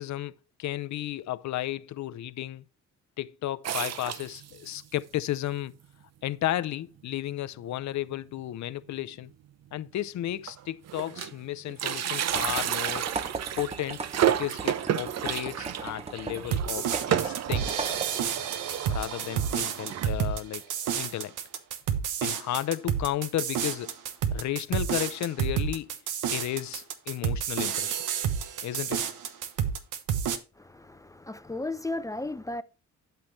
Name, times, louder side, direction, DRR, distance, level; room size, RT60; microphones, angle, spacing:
voice 1, 0.0-2.7 3.2-5.7 6.2-9.3 9.7-13.0 13.6-17.9 18.9-20.6 21.0-21.3 22.2-23.9 24.3-25.9 26.3-28.0 28.6-29.0, left 13 dB, 65° left, 0.7 m, -33 dB
sound 1, 3.6-4.8 5.4-5.5 5.6-5.7 6.6-6.7 7.1-7.3 7.6-7.7 9.0-9.1 9.8-9.9 10.2-11.4 11.7-20.1, right 10 dB, 60° right, 0.8 m, -31 dB
sound 2, 12.3-18.5, right 4 dB, 20° right, 0.8 m, -38 dB
sound 3, 16.5-30.4, right 8 dB, 85° right, 1.2 m, -30 dB
voice 2, 30.6-32.6, left 2 dB, 10° left, 0.6 m, -35 dB
12.0 x 5.8 x 3.2 m
cardioid pair, 90°, 30 cm